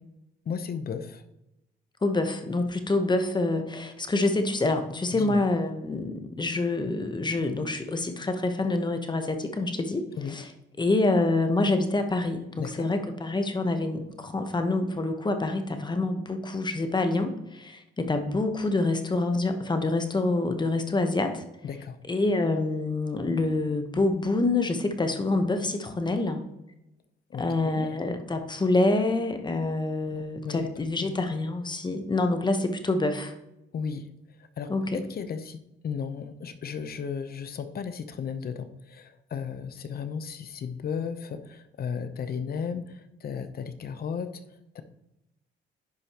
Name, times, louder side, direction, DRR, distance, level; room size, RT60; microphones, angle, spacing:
voice 1, 0.5-1.2 5.1-5.4 10.2-10.4 12.6-12.9 21.6-22.0 27.3-27.9 30.1-30.7 31.0-31.3 33.7-34.0 34.6-44.4 44.7-44.8, left 6 dB, 50° left, 10 dB, 0.7 m, -35 dB
voice 2, 2.0-10.0 10.3-10.5 10.8-21.4 22.1-26.4 27.3-33.3 34.7-35.0, left 2 dB, 20° left, 7 dB, 1.0 m, -26 dB
10.5 x 5.0 x 2.9 m, 0.91 s
cardioid pair, 90°, 20 cm